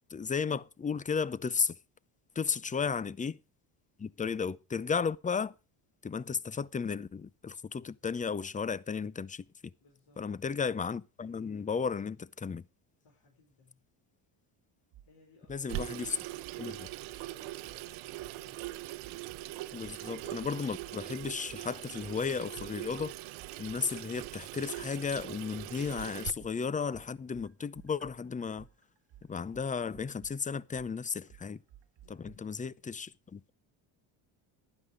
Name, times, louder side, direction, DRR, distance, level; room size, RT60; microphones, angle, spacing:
voice 1, 0.1-1.8 2.4-3.4 4.0-5.5 6.0-9.7 10.2-12.6 15.5-16.2 16.6-16.9 19.7-23.1 23.6-28.7 29.2-31.6 32.1-33.5, left 5 dB, 15° left, 0.5 m, -34 dB
voice 2, 2.5-2.9 9.8-10.5 13.0-13.8 15.0-18.6 32.0-32.7, left 3 dB, 60° left, 4.7 m, -64 dB
sound 1, 14.9-15.1 15.5-15.6 16.0-17.3 17.6-17.8 18.2-19.5 19.8-20.0 20.4-21.6 22.0-26.0 26.4-32.4, right 12 dB, 55° right, 1.2 m, -56 dB
Water tap faucet / Sink (filling or washing), 15.7-26.3, right 17 dB, 75° right, 0.9 m, -42 dB
12.0 x 10.0 x 5.0 m
supercardioid pair, 85°, 50 cm